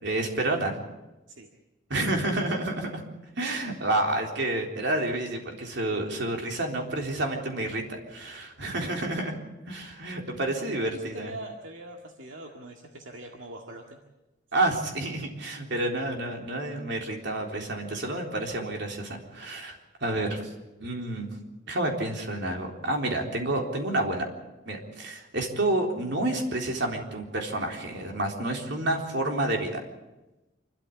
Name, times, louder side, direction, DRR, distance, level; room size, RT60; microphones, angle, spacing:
voice 1, 0.0-0.8 1.9-3.0 3.4-9.3 9.7-11.3 14.5-20.5 20.8-21.4 21.7-24.3 24.7-29.8, right 2 dB, 65° right, 1 dB, 3.8 m, -29 dB
voice 2, 8.7-9.2 10.6-14.0 17.9-18.2, right 1 dB, 85° right, 1 dB, 2.0 m, -43 dB
27.5 x 13.0 x 8.5 m, 1.0 s
head